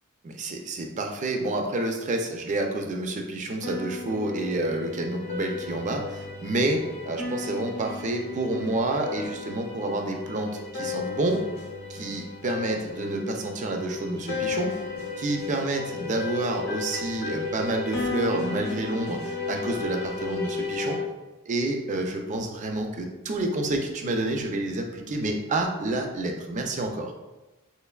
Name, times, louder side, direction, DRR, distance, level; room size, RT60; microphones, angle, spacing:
voice 1, 0.2-11.4 11.9-14.7 15.2-21.0 21.5-27.1, right 2 dB, 35° right, 3 dB, 0.4 m, -29 dB
sound 1, 3.6-21.0, left 4 dB, 50° left, 0.6 m, -34 dB
3.2 x 3.0 x 2.3 m, 1.1 s
head